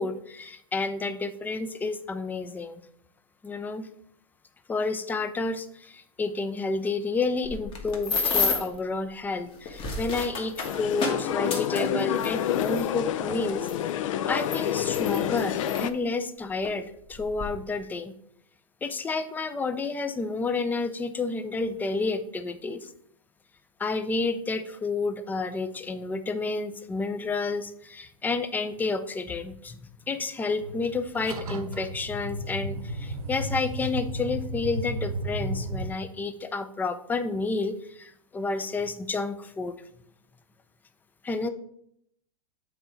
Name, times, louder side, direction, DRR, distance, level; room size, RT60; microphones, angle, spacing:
voice 1, 0.0-2.8 3.4-3.9 4.7-13.7 14.3-18.1 18.8-22.9 23.8-29.8 30.1-39.8 41.2-41.5, left 3 dB, 10° left, 11 dB, 0.4 m, -30 dB
sound 1, 7.4-8.8 9.5-12.9 13.7-13.8 14.4-15.9 16.6-16.8 17.1-17.5, left 4 dB, 30° left, 1.4 m, -30 dB
sound 2, 10.6-15.9, left 10 dB, 60° left, 0.5 m, -28 dB
sound 3, 30.6-35.9, right 1 dB, 85° right, 1.0 m, -33 dB
7.9 x 3.8 x 4.5 m, 0.71 s
hypercardioid pair, 125°, 18 cm